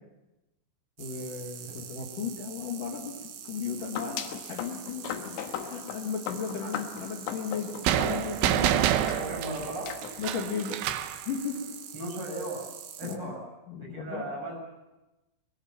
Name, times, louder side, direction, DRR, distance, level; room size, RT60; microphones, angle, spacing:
voice 1, 1.0-3.2 3.5-9.2 10.2-10.8 11.3-11.6 13.0-13.4 13.7-14.3, left 6 dB, 50° left, 0 dB, 3.4 m, -35 dB
sound 1, 1.0-13.2, right 8 dB, 65° right, 3.7 m, -44 dB
sound 2, 3.8-8.6 9.1-9.2 9.9-10.2, left 9 dB, 75° left, 3.3 m, -38 dB
sound 3, 7.9-11.2, right 11 dB, 80° right, 3.4 m, -27 dB
voice 2, 9.1-9.9 11.9-12.7 13.0-13.4 13.8-14.6, right 1 dB, 30° right, -1 dB, 7.6 m, -36 dB
22.5 x 20.5 x 7.4 m, 1.0 s
omnidirectional pair, 5.4 m